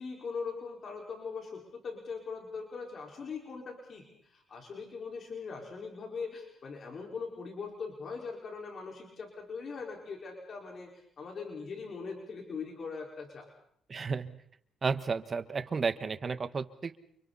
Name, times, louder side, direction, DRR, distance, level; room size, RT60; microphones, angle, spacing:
voice 1, 0.0-13.5, left 5 dB, 50° left, 0 dB, 4.9 m, -41 dB
voice 2, 13.9-14.3 14.8-17.0, right 5 dB, 40° right, 12 dB, 1.4 m, -32 dB
29.5 x 28.5 x 4.2 m, 0.68 s
cardioid pair, 90°, 0 cm